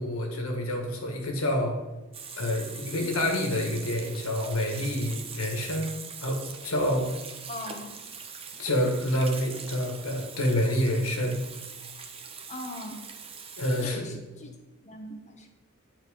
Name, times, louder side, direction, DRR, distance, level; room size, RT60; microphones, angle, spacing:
voice 1, 0.0-1.8 2.4-5.9 6.2-7.1 8.6-11.4 13.6-14.0, left 1 dB, 85° left, 2 dB, 1.6 m, -28 dB
Water tap faucet / Sink (filling or washing), 2.1-13.9, right 6 dB, 25° right, 0.8 m, -42 dB
voice 2, 7.5-7.9 12.5-13.0 13.7-14.5 14.8-15.5, left 1 dB, 35° left, 3 dB, 1.2 m, -39 dB
10.0 x 4.3 x 5.0 m, 1.1 s
head